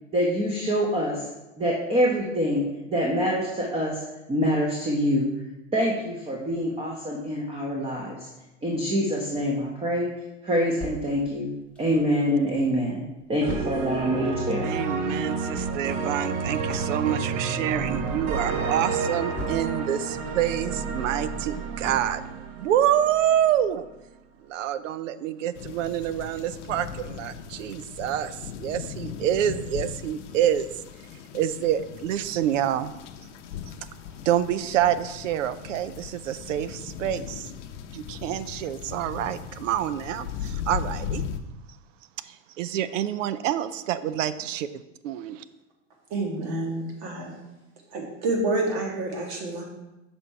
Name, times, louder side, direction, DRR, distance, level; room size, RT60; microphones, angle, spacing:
voice 1, 0.1-1.3 1.6-4.0 4.3-5.3 5.7-8.3 8.6-10.1 10.4-11.5 11.8-13.0 13.3-14.7, equal, 15° right, -2 dB, 1.1 m, -25 dB
sound 1, 10.8-12.3 12.7-12.8 13.0-20.0 20.4-22.6 23.0-23.1 23.5-23.6, left 1 dB, 5° left, 1.3 m, -40 dB
sound 2, 13.4-23.5, right 4 dB, 40° right, 0.9 m, -30 dB
voice 2, 14.6-22.2 22.6-23.9 24.5-30.7 31.3-32.9 34.3-37.5 37.9-41.2 42.2-44.7 45.0-45.4, right 11 dB, 75° right, 14 dB, 0.6 m, -27 dB
sound 3, 25.5-41.4, left 8 dB, 70° left, 0.7 m, -38 dB
voice 3, 46.1-47.4 47.9-49.6, right 2 dB, 60° right, 0 dB, 2.0 m, -28 dB
6.4 x 4.4 x 4.6 m, 1.0 s
hypercardioid pair, 110°, 38 cm